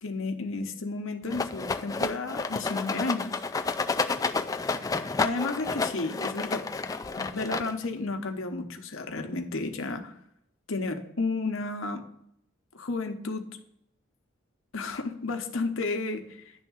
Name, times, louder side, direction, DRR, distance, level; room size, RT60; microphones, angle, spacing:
voice 1, 0.0-3.4 5.2-6.7 7.2-10.1 10.7-12.0 12.7-13.5 14.7-16.6, left 3 dB, 80° left, 5 dB, 1.1 m, -32 dB
Rattle, 1.3-8.0, left 4 dB, 15° left, 0.3 m, -30 dB
10.5 x 3.6 x 7.2 m, 0.73 s
head